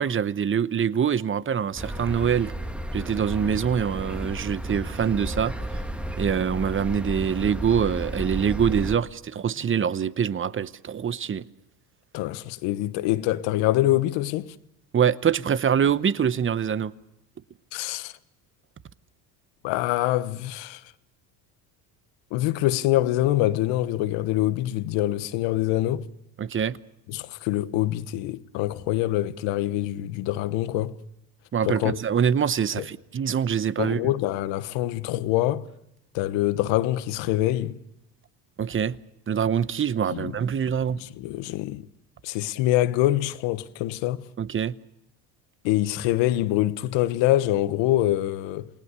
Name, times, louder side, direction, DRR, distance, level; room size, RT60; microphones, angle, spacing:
voice 1, 0.0-2.5 2.9-5.6 6.2-11.4 14.9-16.9 26.4-26.8 31.5-34.0 38.6-39.0 39.3-41.0 44.4-44.8, right 8 dB, 25° right, 0.9 m, -24 dB
sound 1, 1.8-9.0, right 1 dB, ahead, 1.6 m, -33 dB
voice 2, 12.1-14.5 17.7-18.1 19.6-20.8 22.3-26.1 27.1-31.0 31.6-32.0 32.7-32.8 33.8-35.7 36.1-37.8 40.1-40.3 41.0-41.8 42.2-44.2 45.6-48.7, left 15 dB, 70° left, 1.3 m, -25 dB
28.5 x 19.5 x 6.8 m
supercardioid pair, 90°, 46 cm